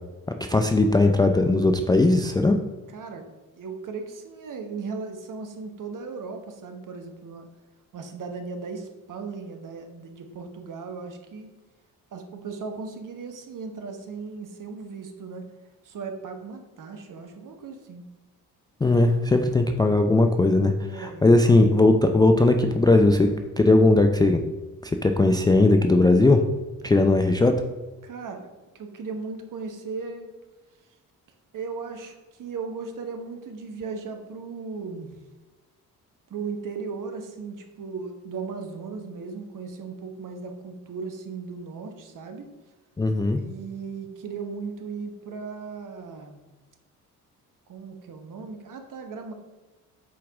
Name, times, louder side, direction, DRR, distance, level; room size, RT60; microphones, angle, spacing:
voice 1, 0.5-2.6 18.8-23.3 23.6-24.4 24.8-26.4 26.8-27.5 43.0-43.4, left 2 dB, 10° left, 5 dB, 0.4 m, -19 dB
voice 2, 2.9-3.3 3.5-7.5 7.9-11.5 12.1-15.5 15.8-18.0 20.8-21.7 28.0-28.5 28.7-30.3 31.5-35.1 36.3-42.5 43.4-46.4 47.7-49.3, right 4 dB, 45° right, 5 dB, 1.1 m, -37 dB
7.2 x 4.7 x 3.6 m, 1.2 s
hypercardioid pair, 45°, 45 cm